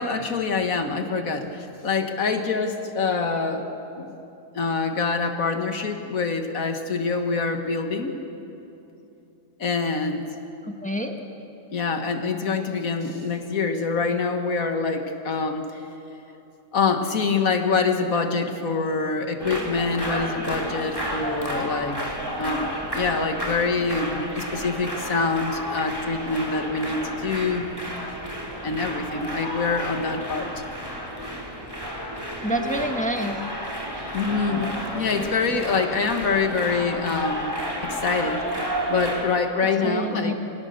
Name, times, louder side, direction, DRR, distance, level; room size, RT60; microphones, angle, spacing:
voice 1, 0.0-3.6 4.0-4.1 4.5-8.1 9.6-10.3 11.7-15.8 16.7-27.7 28.6-30.5 34.1-37.5 37.8-38.4 38.9-40.3, left 4 dB, 55° left, 6 dB, 1.8 m, -25 dB
voice 2, 10.6-11.1 32.4-33.4 39.8-40.3, equal, 5° left, 3 dB, 1.2 m, -27 dB
sound 1, 19.4-39.3, equal, 15° right, 2.6 m, -31 dB
25.5 x 18.0 x 6.6 m, 2.9 s
omnidirectional pair, 1.8 m